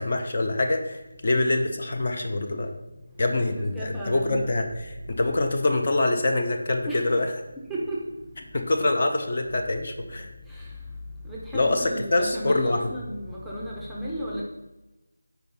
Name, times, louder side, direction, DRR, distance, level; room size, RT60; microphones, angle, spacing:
voice 1, 0.0-2.7 3.2-7.3 8.5-10.3 11.5-12.9, left 2 dB, 40° left, 4 dB, 0.6 m, -25 dB
voice 2, 3.3-4.4 6.8-7.1 7.6-8.1 10.5-10.8 11.2-14.4, equal, ahead, -5 dB, 0.6 m, -34 dB
4.6 x 4.0 x 5.4 m, 1.0 s
figure-of-eight pair, 175°, 0 cm